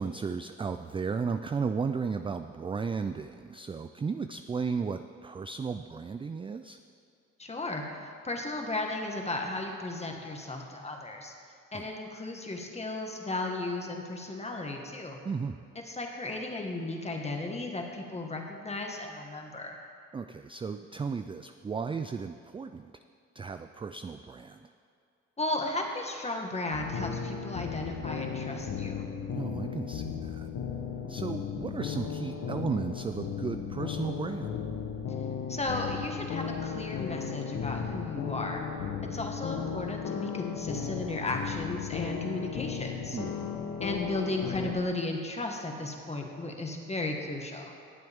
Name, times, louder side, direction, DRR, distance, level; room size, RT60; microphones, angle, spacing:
voice 1, 0.0-6.8 11.7-11.9 15.2-15.6 20.1-22.9 23.3-24.7 29.3-30.5 31.1-34.5 43.1-43.6, right 5 dB, 20° right, 9 dB, 0.3 m, -34 dB
voice 2, 7.4-11.3 11.7-15.2 15.8-19.8 25.4-29.0 35.5-38.6 39.1-43.2 43.8-47.7, left 2 dB, 20° left, 2 dB, 1.6 m, -35 dB
sound 1, 26.7-44.7, left 7 dB, 70° left, 1.2 m, -35 dB
19.0 x 7.7 x 3.6 m, 2.4 s
cardioid pair, 90°, 30 cm